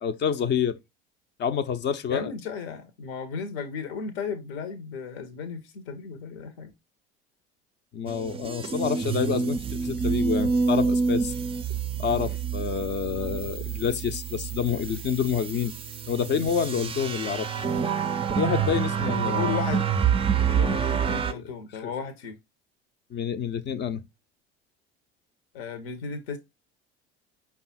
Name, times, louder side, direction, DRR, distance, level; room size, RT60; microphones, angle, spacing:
voice 1, 0.0-0.8 1.4-2.3 7.9-11.3 12.0-15.7 16.1-17.7 18.4-19.6 20.7-20.8 21.3-21.5 21.8-21.9 23.1-24.0, left 7 dB, 35° left, 0.6 m, -28 dB
voice 2, 2.1-6.7 19.0-19.8 20.5-22.4 25.5-26.4, left 6 dB, 70° left, 0.9 m, -34 dB
sound 1, 8.1-21.3, right 6 dB, 20° right, 0.5 m, -27 dB
5.4 x 2.4 x 4.1 m
hypercardioid pair, 65°, 32 cm